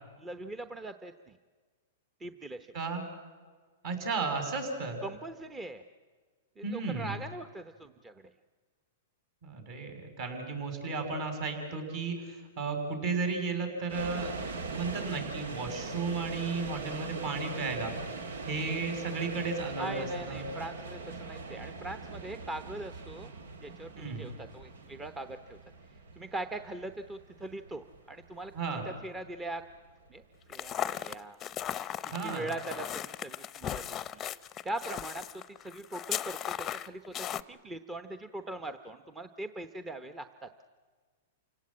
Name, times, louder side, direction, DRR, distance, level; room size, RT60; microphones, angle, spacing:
voice 1, 0.2-1.4 2.2-2.7 5.0-5.8 6.6-8.1 19.8-23.3 23.6-25.6 26.2-28.5 29.0-29.6 30.1-30.2 30.5-31.4 32.2-34.2 34.6-40.5, right 2 dB, 15° right, 10 dB, 0.9 m, -41 dB
voice 2, 2.7-3.0 3.8-5.0 6.6-7.1 9.4-14.4 14.7-17.9 18.5-20.4 24.0-24.2 28.5-28.8 32.1-32.5, right 4 dB, 50° right, 5 dB, 6.6 m, -34 dB
sound 1, 13.9-30.9, right 3 dB, 85° right, 1.7 m, -42 dB
sound 2, 30.5-37.4, left 10 dB, 25° left, 0.7 m, -37 dB
28.5 x 17.5 x 8.7 m, 1.5 s
hypercardioid pair, 140°, 0 cm